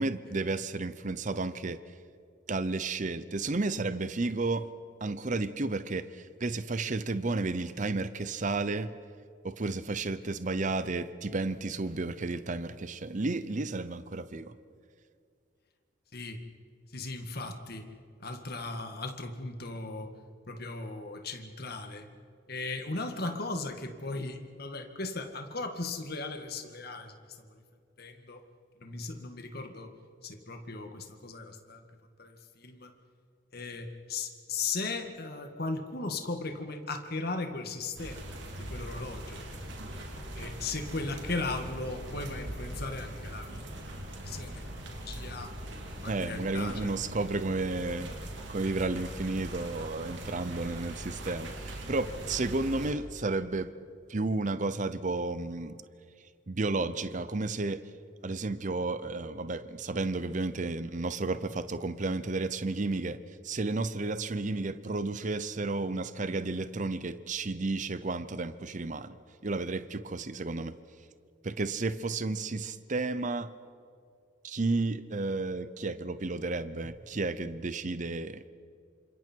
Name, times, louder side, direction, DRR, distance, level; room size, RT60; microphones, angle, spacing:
voice 1, 0.0-1.8 2.5-4.7 5.0-8.9 9.4-14.5 46.1-48.1 48.5-53.7 54.1-55.8 56.5-57.8 58.2-63.2 63.4-69.2 69.4-70.8 71.4-73.5 74.4-78.4, right 3 dB, 40° right, 13 dB, 0.7 m, -32 dB
voice 2, 16.1-16.4 16.9-17.9 18.2-20.1 20.5-22.1 22.5-27.5 28.0-28.4 28.8-29.9 30.2-31.8 32.2-32.9 33.5-38.3 38.6-39.4 40.3-43.6 44.2-45.5 46.0-46.9, left 3 dB, 50° left, 5 dB, 2.0 m, -37 dB
sound 1, 38.0-52.9, right 1 dB, 65° right, 2.9 m, -41 dB
28.5 x 26.0 x 4.6 m, 2.3 s
head